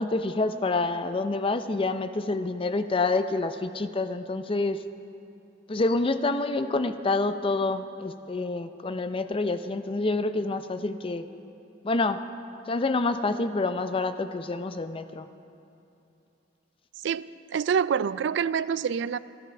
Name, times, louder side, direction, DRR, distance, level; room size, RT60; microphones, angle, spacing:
voice 1, 0.0-4.8 5.7-11.3 11.8-12.2 12.7-15.3, left 3 dB, 30° left, 10 dB, 0.5 m, -27 dB
voice 2, 17.5-19.2, right 7 dB, 65° right, 17 dB, 0.3 m, -26 dB
14.0 x 12.5 x 5.9 m, 2.8 s
head